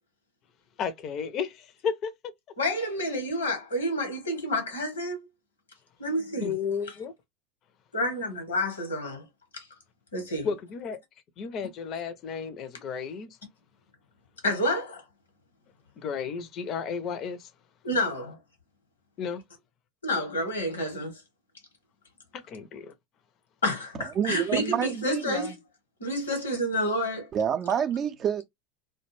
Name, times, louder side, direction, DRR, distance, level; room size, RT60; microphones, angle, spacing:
voice 1, 0.8-2.3 6.4-7.1 10.4-11.0 11.4-13.3 16.0-17.5 19.2-19.4 22.3-22.9, left 6 dB, 45° left, 0.5 m, -33 dB
voice 2, 2.6-5.3 6.0-6.5 7.9-9.3 9.5-9.7 10.1-10.5 14.4-15.0 17.8-18.4 20.0-21.2 23.6-25.6 26.0-27.3, left 1 dB, 85° left, 1.0 m, -29 dB
voice 3, 24.2-25.5 27.3-28.4, right 8 dB, 35° right, 0.4 m, -28 dB
2.2 x 2.2 x 3.1 m
hypercardioid pair, 85°, 0 cm